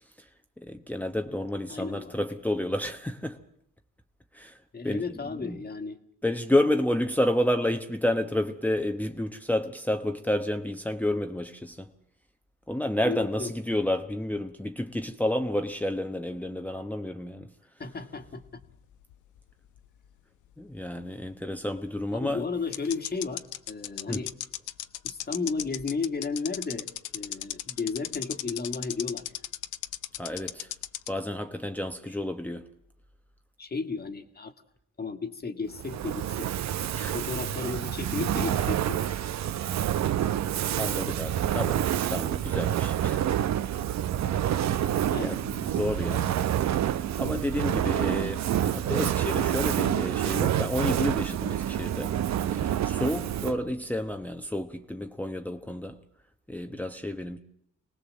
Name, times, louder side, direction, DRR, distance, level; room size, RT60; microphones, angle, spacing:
voice 1, 0.6-3.4 4.3-4.6 4.8-5.0 5.4-5.6 6.2-11.9 12.7-17.5 20.6-22.5 24.1-24.2 30.2-30.7 31.1-32.7 36.9-37.2 40.8-43.2 44.3-44.4 44.7-46.3 46.7-46.9 47.2-56.0 56.5-57.4, left 1 dB, 5° left, 1.0 m, -30 dB
voice 2, 1.7-2.1 4.7-6.0 13.0-13.5 17.8-18.6 22.1-24.3 25.0-26.9 27.1-29.3 32.1-32.2 33.6-34.5 35.0-36.5 37.1-39.4 45.1-45.4 45.8-46.2, left 4 dB, 30° left, 1.7 m, -34 dB
sound 1, 18.2-19.8 20.0-20.1 22.0-22.1 22.7-31.1, left 13 dB, 80° left, 0.8 m, -35 dB
Fire, 35.7-53.7, right 11 dB, 65° right, 0.8 m, -28 dB
25.5 x 18.5 x 7.6 m
cardioid pair, 90°, 30 cm